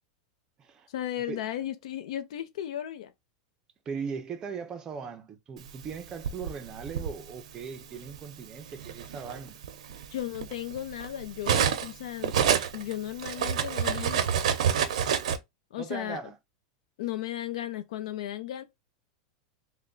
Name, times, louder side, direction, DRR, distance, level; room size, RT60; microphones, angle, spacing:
voice 1, 0.9-3.1 10.1-12.3 12.7-14.4 15.7-16.2 17.0-18.6, left 12 dB, 70° left, 0.6 m, -35 dB
voice 2, 3.9-9.6 15.8-16.4, right 6 dB, 20° right, 0.5 m, -39 dB
Cutlery silverware, 5.8-7.1 8.1-8.3 8.7-11.9 12.2-15.4, right 8 dB, 85° right, 0.7 m, -28 dB
3.4 x 2.2 x 3.8 m
supercardioid pair, 165°, 4 cm